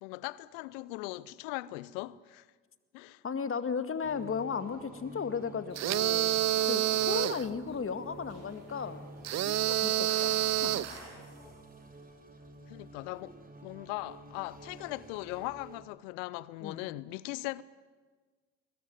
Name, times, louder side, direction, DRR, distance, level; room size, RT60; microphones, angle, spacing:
voice 1, 0.0-2.5 2.9-3.2 6.8-7.1 12.7-13.4 13.6-17.6, left 19 dB, 80° left, 0.7 m, -39 dB
voice 2, 3.2-9.1 9.4-10.9 16.6-16.8, left 6 dB, 40° left, 2.1 m, -36 dB
sound 1, 4.0-15.8, right 2 dB, 25° right, 3.9 m, -50 dB
sound 2, 5.8-7.5 9.2-11.0, right 13 dB, 55° right, 0.7 m, -28 dB
sound 3, 7.6-11.8, right 1 dB, 85° right, 6.7 m, -53 dB
21.5 x 21.0 x 9.6 m
hypercardioid pair, 55°, 33 cm